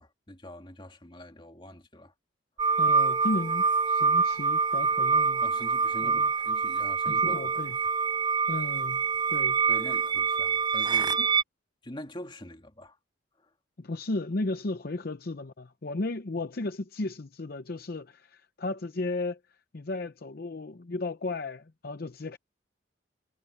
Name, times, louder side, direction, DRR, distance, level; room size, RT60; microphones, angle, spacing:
voice 1, 0.0-2.1 5.4-7.5 7.8-7.9 9.7-11.3 11.8-13.0 13.4-13.5, left 1 dB, 25° left, 2.5 m, -44 dB
sound 1, 2.6-11.4, right 5 dB, 20° right, 0.3 m, -25 dB
voice 2, 2.8-5.4 6.0-6.3 7.1-7.8 8.5-9.0 9.3-9.7 11.2-11.3 13.8-19.4 19.7-22.4, left 2 dB, 55° left, 0.7 m, -34 dB
head